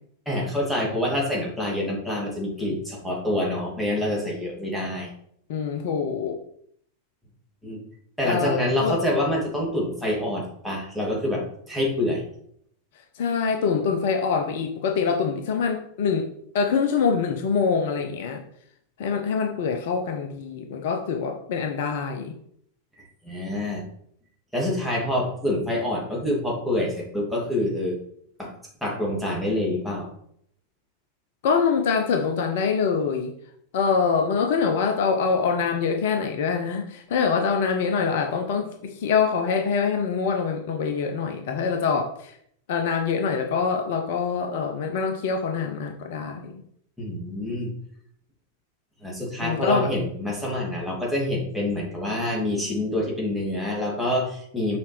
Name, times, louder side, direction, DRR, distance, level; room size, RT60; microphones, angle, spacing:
voice 1, 0.3-5.1 7.6-7.8 8.2-12.2 23.2-23.8 24.5-28.0 28.4-28.5 28.8-30.1 47.0-47.7 49.0-54.8, left 1 dB, ahead, -3 dB, 2.3 m, -26 dB
voice 2, 5.5-6.4 8.2-9.0 13.1-16.3 16.5-18.4 19.0-22.3 31.4-33.3 33.7-42.4 42.7-46.6 49.4-49.9, left 5 dB, 55° left, 5 dB, 0.7 m, -24 dB
6.9 x 5.0 x 3.3 m, 0.67 s
figure-of-eight pair, 90°, 0 cm